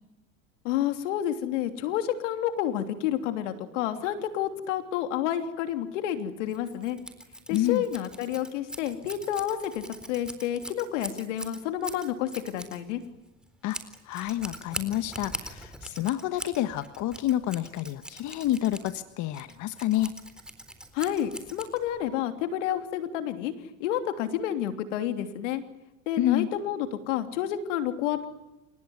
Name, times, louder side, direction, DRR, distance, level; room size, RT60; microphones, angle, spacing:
voice 1, 0.6-7.0 7.5-13.0 20.9-23.5 23.8-25.6 26.1-28.3, left 11 dB, 80° left, 8 dB, 3.2 m, -30 dB
Scissors, 6.5-22.1, right 1 dB, ahead, 3.9 m, -42 dB
voice 2, 7.5-7.8 13.6-13.8 14.0-20.2 26.2-26.5, left 13 dB, 50° left, 11 dB, 1.4 m, -28 dB
28.5 x 18.0 x 9.6 m, 0.99 s
supercardioid pair, 105°, 36 cm